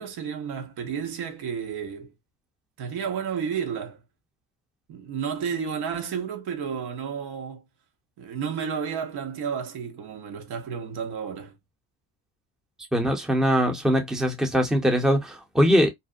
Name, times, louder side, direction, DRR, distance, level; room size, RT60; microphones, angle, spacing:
voice 1, 0.0-2.1 2.8-4.0 4.9-7.6 8.2-11.6, right 7 dB, 65° right, 0.9 m, -31 dB
voice 2, 12.9-15.9, equal, ahead, 0.6 m, -22 dB
2.6 x 2.0 x 2.4 m
supercardioid pair, 85°, 42 cm